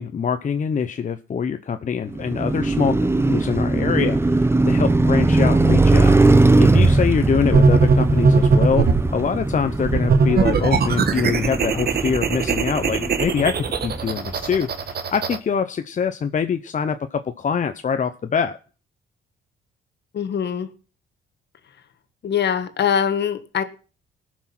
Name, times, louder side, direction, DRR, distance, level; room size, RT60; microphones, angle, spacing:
voice 1, 0.0-18.6, left 6 dB, 40° left, 9 dB, 0.8 m, -24 dB
Car passing by, 2.1-14.3, right 2 dB, 10° right, 0.7 m, -20 dB
sound 1, 7.5-9.1 9.8-15.4, right 5 dB, 50° right, 1.5 m, -20 dB
voice 2, 20.1-20.7 22.2-23.6, left 8 dB, 60° left, 10 dB, 1.6 m, -22 dB
19.0 x 6.3 x 5.9 m, 0.38 s
cardioid pair, 90°, 20 cm